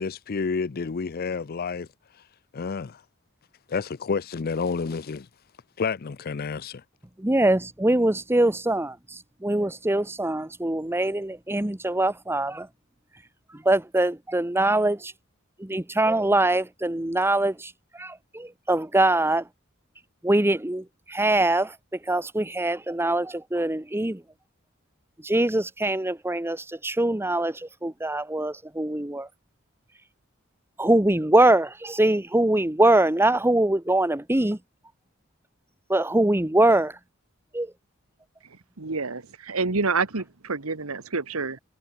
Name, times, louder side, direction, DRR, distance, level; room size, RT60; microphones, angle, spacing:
voice 1, 0.0-1.9 2.5-3.0 3.7-5.3 5.8-6.8, left 5 dB, 45° left, 0.5 m, -29 dB
voice 2, 7.2-12.7 13.5-15.1 15.6-19.5 20.2-21.8 22.0-24.2 25.2-29.3 30.8-34.6 35.9-37.0 37.5-37.7, right 1 dB, 10° right, 1.0 m, -23 dB
voice 3, 38.4-41.6, right 4 dB, 90° right, 1.6 m, -28 dB
head